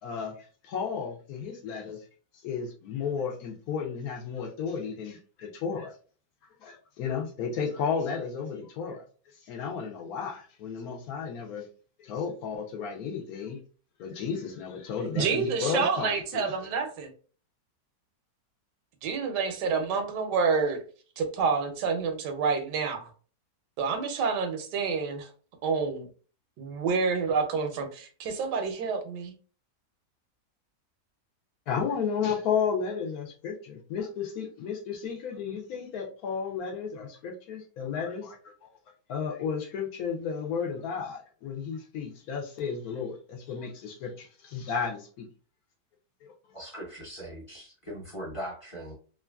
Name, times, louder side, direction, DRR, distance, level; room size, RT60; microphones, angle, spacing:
voice 1, 0.0-2.0 2.4-5.9 6.6-9.0 9.4-11.7 12.0-13.6 14.0-16.5 31.7-38.4 39.1-45.3 46.2-46.3, left 6 dB, 70° left, 1.0 m, -33 dB
voice 2, 15.1-17.1 19.0-20.8 21.2-23.1 23.8-25.3 25.6-26.1 26.6-29.3, right 5 dB, 90° right, 1.3 m, -28 dB
voice 3, 46.5-48.9, equal, 25° left, 0.8 m, -40 dB
3.1 x 2.4 x 2.2 m
omnidirectional pair, 1.8 m